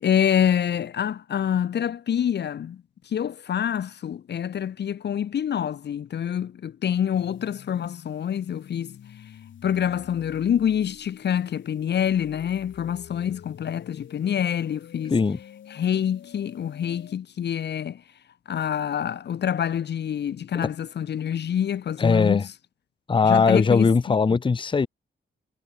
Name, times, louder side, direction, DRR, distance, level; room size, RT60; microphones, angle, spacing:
voice 1, 0.0-9.0 9.6-15.1 15.7-18.0 18.5-22.5 23.2-24.4, left 9 dB, 60° left, 0.8 m, -26 dB
sound 1, 7.1-17.1, left 9 dB, 75° left, 1.5 m, -47 dB
voice 2, 22.0-22.4 23.1-24.9, left 5 dB, 25° left, 0.7 m, -20 dB
wide cardioid pair, 120°, 20 cm